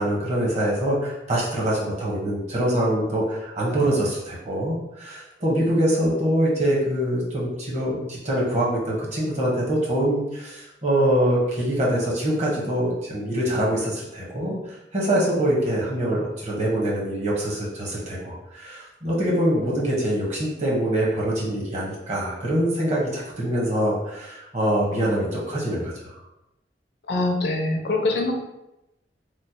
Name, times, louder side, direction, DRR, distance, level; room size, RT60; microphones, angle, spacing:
voice 1, 0.0-26.1, right 1 dB, 40° right, -4 dB, 0.9 m, -24 dB
voice 2, 27.1-28.3, left 2 dB, 65° left, 2 dB, 0.5 m, -23 dB
3.1 x 2.0 x 4.1 m, 0.91 s
head